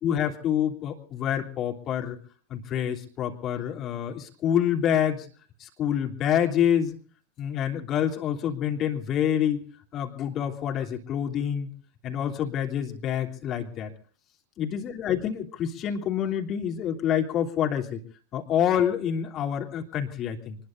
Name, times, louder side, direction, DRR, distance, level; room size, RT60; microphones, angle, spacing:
voice 1, 0.0-2.2 2.5-5.3 5.6-7.0 7.4-9.7 9.9-11.7 12.0-13.9 14.6-18.0 18.3-20.6, left 9 dB, 30° left, 2 dB, 3.1 m, -27 dB
25.0 x 21.0 x 2.6 m, 0.44 s
figure-of-eight pair, 90°, 0 cm